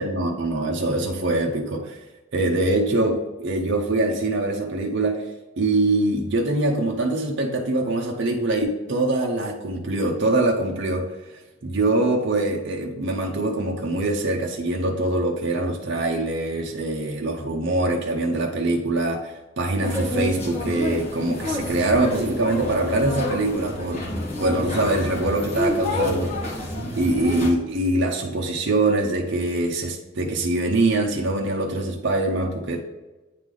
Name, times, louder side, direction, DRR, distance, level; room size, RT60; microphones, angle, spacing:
voice 1, 0.0-2.0 2.3-5.2 5.6-11.1 11.6-24.0 24.4-26.6 27.0-32.8, right 2 dB, 60° right, 1 dB, 0.6 m, -23 dB
sound 1, 19.8-27.5, left 1 dB, 35° left, 1.4 m, -28 dB
9.1 x 3.3 x 3.7 m, 1.1 s
head